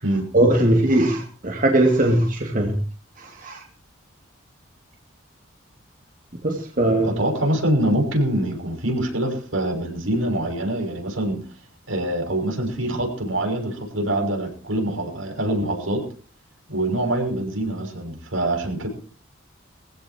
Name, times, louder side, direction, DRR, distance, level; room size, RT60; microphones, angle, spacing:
voice 1, 0.3-2.8 3.2-3.6 6.4-7.2, right 1 dB, 40° right, 2 dB, 2.5 m, -20 dB
voice 2, 7.0-11.4 11.9-16.0 16.7-18.9, right 1 dB, 75° right, 3 dB, 6.3 m, -24 dB
23.0 x 15.5 x 2.9 m, 0.39 s
head